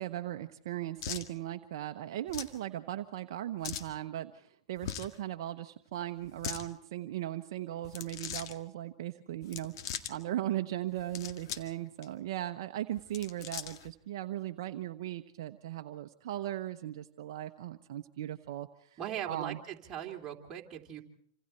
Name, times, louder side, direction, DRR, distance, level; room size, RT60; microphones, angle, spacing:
voice 1, 0.0-19.0 19.3-19.6, right 13 dB, 60° right, 7 dB, 0.9 m, -38 dB
sound 1, 1.0-1.3 2.3-2.6 3.6-3.9 4.8-5.2 6.2-6.6 7.8-8.5 9.4-10.1 11.0-11.7 12.0-12.1 13.0-13.9, left 9 dB, 60° left, 1.8 m, -40 dB
voice 2, 19.0-21.0, right 10 dB, 25° right, 0 dB, 3.1 m, -40 dB
27.5 x 26.5 x 4.4 m, 0.65 s
hypercardioid pair, 115°, 3 cm